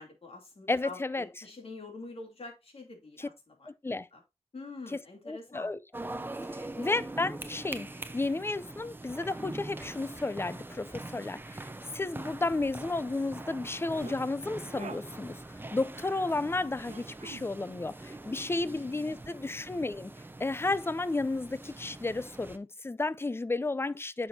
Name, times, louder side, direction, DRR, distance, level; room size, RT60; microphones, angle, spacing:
voice 1, 0.0-4.2 4.5-5.7 6.8-6.9 18.6-19.5, left 3 dB, 55° left, 2.9 m, -47 dB
voice 2, 0.7-1.3 3.2-3.3 3.7-4.1 5.3-5.8 6.8-20.1 20.4-24.3, left 2 dB, 20° left, 0.5 m, -32 dB
sound 1, 5.9-22.6, right 2 dB, 15° right, 0.7 m, -43 dB
sound 2, 13.8-14.2 14.7-15.0 16.9-17.5, right 5 dB, 75° right, 1.1 m, -44 dB
9.2 x 6.1 x 2.7 m
wide cardioid pair, 85°, 12 cm